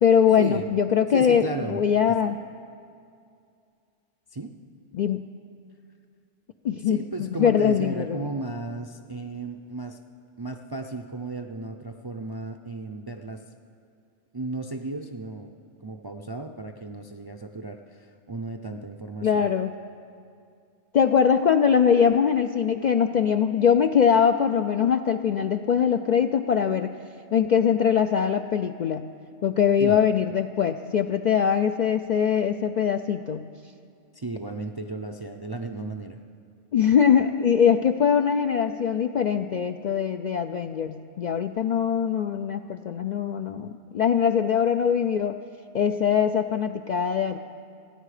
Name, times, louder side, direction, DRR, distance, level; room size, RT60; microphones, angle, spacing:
voice 1, 0.0-2.4 4.9-5.3 6.6-8.2 19.2-19.7 20.9-26.9 27.3-29.1 29.4-33.5 36.7-45.3 45.7-47.4, left 7 dB, 65° left, 7 dB, 0.4 m, -22 dB
voice 2, 1.1-2.2 4.3-4.5 6.8-10.0 10.4-13.5 14.3-15.5 15.8-19.5 29.8-30.0 34.1-36.2, right 2 dB, 35° right, 4 dB, 0.3 m, -34 dB
29.0 x 10.0 x 4.9 m, 2.4 s
omnidirectional pair, 1.2 m